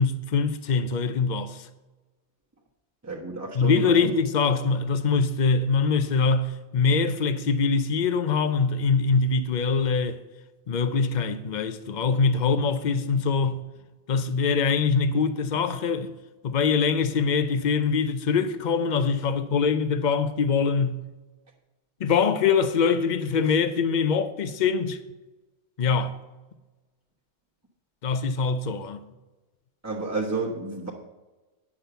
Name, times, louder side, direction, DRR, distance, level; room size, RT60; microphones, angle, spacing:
voice 1, 0.0-1.7 3.5-10.2 10.7-13.6 14.1-16.1 16.4-21.0 22.0-25.0 25.8-26.2 28.0-29.0, left 5 dB, 45° left, 0.7 m, -23 dB
voice 2, 3.0-4.1 29.8-30.9, right 3 dB, 15° right, 1.2 m, -31 dB
9.8 x 6.0 x 6.9 m
omnidirectional pair, 1.3 m